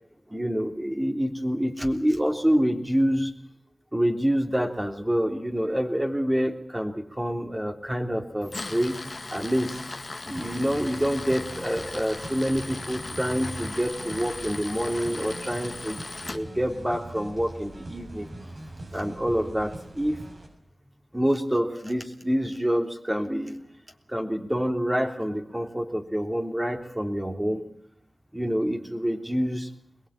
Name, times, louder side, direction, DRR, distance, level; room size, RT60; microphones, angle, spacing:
voice 1, 0.3-3.3 3.9-9.0 9.3-9.9 10.3-16.0 16.3-18.3 18.9-20.2 21.1-23.6 24.1-27.6 28.3-29.7, equal, 15° right, 3 dB, 3.3 m, -27 dB
Tools, 8.4-16.4, left 2 dB, 50° left, 1.9 m, -38 dB
sound 1, 10.2-20.5, right 1 dB, 60° right, 7.1 m, -43 dB
22.5 x 20.5 x 9.0 m, 0.67 s
wide cardioid pair, 60°, 0 cm